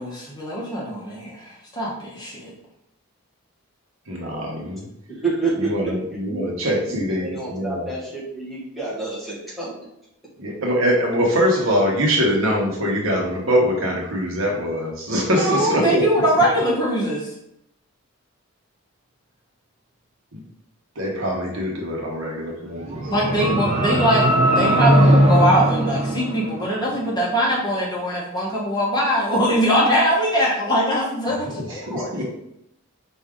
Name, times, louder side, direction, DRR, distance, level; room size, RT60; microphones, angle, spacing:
voice 1, 0.0-2.5 15.3-17.3 23.1-32.2, equal, 20° left, -4 dB, 0.8 m, -22 dB
voice 2, 4.1-4.9 5.6-7.9 10.4-16.0 20.3-20.4 21.0-23.0 31.6-32.2, equal, 65° right, -1 dB, 1.1 m, -23 dB
voice 3, 5.1-5.7 6.3-6.4 6.9-9.7 15.4-16.3, right 3 dB, ahead, -7 dB, 1.1 m, -28 dB
sound 1, 22.7-27.0, right 1 dB, 30° right, 0.6 m, -19 dB
4.7 x 2.7 x 3.6 m, 0.81 s
head